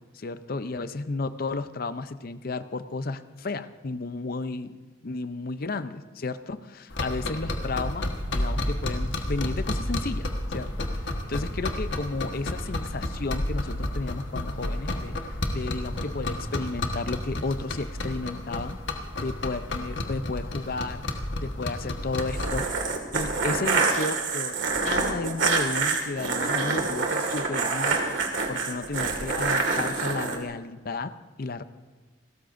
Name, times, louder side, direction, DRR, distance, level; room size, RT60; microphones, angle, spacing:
voice 1, 0.1-18.8 19.2-21.0 21.4-22.7 23.1-24.6 24.9-28.0 28.5-31.6, left 3 dB, 50° left, 12 dB, 0.6 m, -33 dB
sound 1, 6.9-22.7, left 1 dB, 75° left, 1.4 m, -31 dB
sound 2, 22.2-30.4, right 4 dB, 80° right, 2.0 m, -26 dB
28.5 x 13.5 x 2.6 m, 1.3 s
head